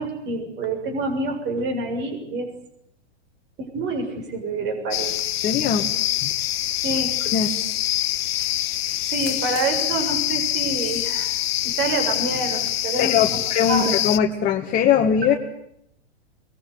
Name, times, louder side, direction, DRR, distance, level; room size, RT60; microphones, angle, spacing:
voice 1, 0.0-2.5 3.6-5.1 6.8-7.1 9.1-11.3 11.8-13.4 13.7-13.9, right 3 dB, 30° right, 5 dB, 6.7 m, -27 dB
sound 1, 4.9-14.2, left 14 dB, 60° left, 1.1 m, -25 dB
voice 2, 5.4-5.9 6.2-6.3 7.2-7.5 13.0-15.3, left 8 dB, 25° left, 1 dB, 2.0 m, -21 dB
23.5 x 21.5 x 9.7 m, 0.76 s
hypercardioid pair, 135°, 34 cm